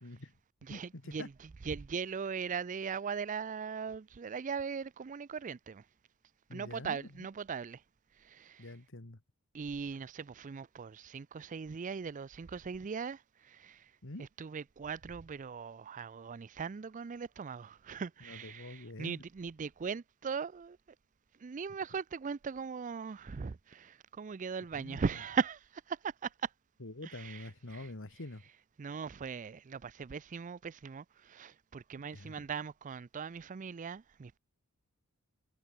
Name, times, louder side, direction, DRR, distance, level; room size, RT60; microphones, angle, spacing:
voice 1, 0.0-0.3 0.7-1.3 6.5-7.3 8.6-9.2 14.0-14.3 18.2-19.2 24.7-25.0 26.8-28.4 32.1-32.3, left 2 dB, 60° left, 1.9 m, -46 dB
voice 2, 0.6-1.3 1.6-5.8 6.5-7.8 8.2-8.7 9.5-13.9 14.2-20.8 21.4-26.5 27.0-27.9 28.8-34.4, right 6 dB, 35° right, 0.4 m, -39 dB
head